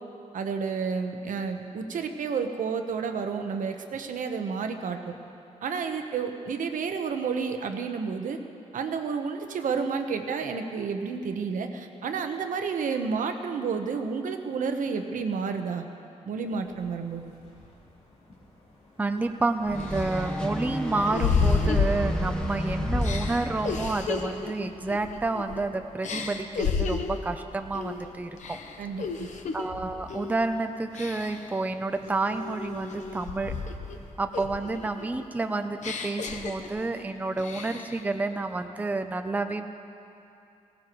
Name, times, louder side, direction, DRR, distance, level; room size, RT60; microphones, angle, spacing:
voice 1, 0.3-5.1 5.6-8.4 8.7-15.8 16.3-17.2 28.8-29.3, right 5 dB, 85° right, 6 dB, 1.0 m, -30 dB
sound 1, 16.4-34.1, left 1 dB, 50° left, 3.4 m, -47 dB
voice 2, 19.0-28.6 29.5-33.5 34.2-39.7, right 3 dB, 10° right, 7 dB, 0.5 m, -29 dB
sound 2, 19.2-19.3 19.8-22.5 23.0-25.7 26.0-27.3 27.7-28.0 28.4-29.7 30.1-30.4 30.9-31.5 32.0-34.0 34.3-37.0 37.4-38.0, left 5 dB, 65° left, 0.9 m, -32 dB
sound 3, 19.6-24.5, left 1 dB, 5° left, 1.1 m, -31 dB
20.5 x 17.5 x 3.1 m, 2.7 s
wide cardioid pair, 170°, 13 cm